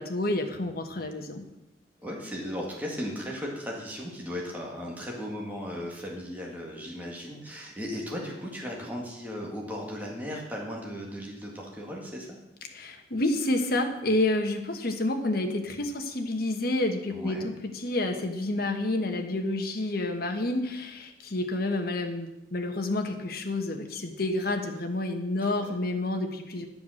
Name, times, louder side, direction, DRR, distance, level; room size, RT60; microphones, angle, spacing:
voice 1, 0.0-1.4 12.7-26.6, left 2 dB, 55° left, 4 dB, 1.3 m, -29 dB
voice 2, 2.0-12.4 17.1-17.5 25.4-25.7, equal, 10° right, -2 dB, 1.9 m, -36 dB
11.0 x 7.0 x 6.4 m, 0.93 s
head